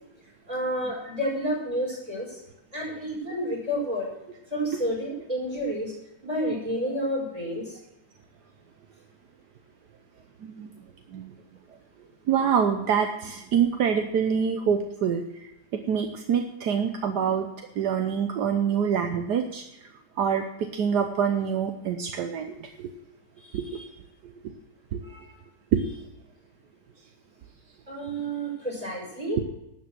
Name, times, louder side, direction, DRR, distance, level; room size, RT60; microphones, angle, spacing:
voice 1, 0.5-2.4 2.7-4.1 4.5-5.9 6.2-7.8 23.4-23.8 25.0-25.3 27.9-29.4, equal, 20° right, -4 dB, 5.6 m, -30 dB
voice 2, 12.3-17.5 17.8-19.6 20.2-22.9 23.5-23.8 24.9-25.0 25.7-25.8, right 7 dB, 75° right, 5 dB, 1.4 m, -26 dB
12.5 x 7.4 x 7.5 m, 0.85 s
omnidirectional pair, 1.8 m